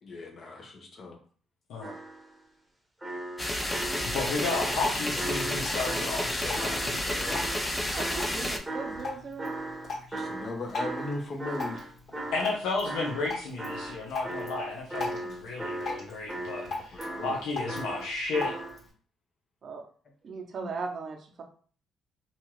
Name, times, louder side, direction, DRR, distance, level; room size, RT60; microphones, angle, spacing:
voice 1, 0.0-1.2 10.1-11.9 16.9-17.4 17.7-17.8 20.6-20.7, left 2 dB, 50° left, 2 dB, 0.9 m, -38 dB
sound 1, 1.8-2.4 3.0-7.0 7.3-13.3 13.6-18.8, right 1 dB, 10° right, 0.9 m, -37 dB
sound 2, 3.4-8.6, left 1 dB, 15° left, 0.4 m, -31 dB
voice 2, 4.0-7.4 12.3-18.6, left 3 dB, 85° left, -3 dB, 0.7 m, -33 dB
Drip, 4.4-18.9, left 3 dB, 65° left, 1.5 m, -41 dB
voice 3, 7.9-9.5 19.6-19.8 20.2-21.4, right 4 dB, 50° right, 3 dB, 0.6 m, -38 dB
2.8 x 2.4 x 3.0 m, 0.44 s
cardioid pair, 90°, 0 cm